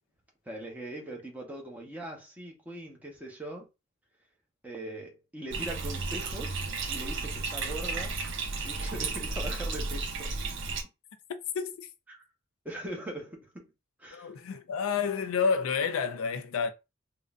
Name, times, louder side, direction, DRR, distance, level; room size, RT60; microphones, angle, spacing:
voice 1, 0.5-3.7 4.6-6.6 6.9-8.2 8.6-10.3 12.1-12.2 12.6-13.7 14.0-14.3, right 1 dB, 10° right, 0.8 m, -41 dB
Bathtub (filling or washing), 5.5-10.8, right 3 dB, 60° right, 0.6 m, -33 dB
voice 2, 11.5-11.9 14.1-16.7, left 5 dB, 80° left, 0.4 m, -29 dB
3.7 x 2.1 x 2.4 m
head